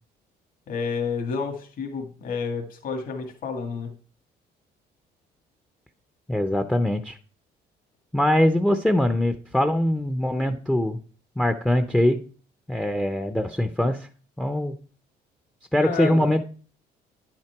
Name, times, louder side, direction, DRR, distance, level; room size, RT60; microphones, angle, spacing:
voice 1, 0.7-3.9 15.8-16.3, left 5 dB, 55° left, 3 dB, 1.9 m, -30 dB
voice 2, 6.3-7.2 8.1-11.0 11.4-12.2 12.7-14.1 14.4-14.8 15.7-16.4, left 1 dB, 5° left, 8 dB, 0.6 m, -22 dB
10.0 x 5.9 x 4.6 m, 0.39 s
cardioid pair, 110°, 17 cm